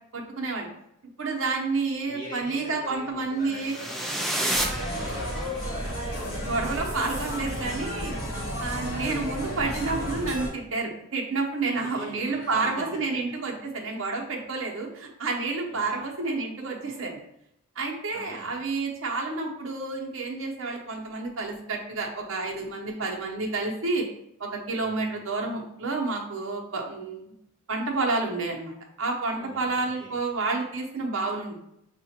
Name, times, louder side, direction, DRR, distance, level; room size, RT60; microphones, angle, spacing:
voice 1, 0.1-0.7 1.2-3.7 6.5-8.1 8.6-17.2 17.8-24.1 24.4-27.2 27.7-31.6, right 3 dB, 70° right, 0 dB, 0.9 m, -30 dB
voice 2, 2.0-6.0 11.7-13.2 15.9-16.0 18.1-18.6 24.8-25.0 29.3-30.1, equal, 35° left, -10 dB, 1.6 m, -42 dB
sound 1, 3.5-5.7, right 1 dB, ahead, 0.4 m, -30 dB
sound 2, 4.5-10.5, equal, 70° left, 1.3 m, -32 dB
5.6 x 2.5 x 2.8 m, 0.76 s
head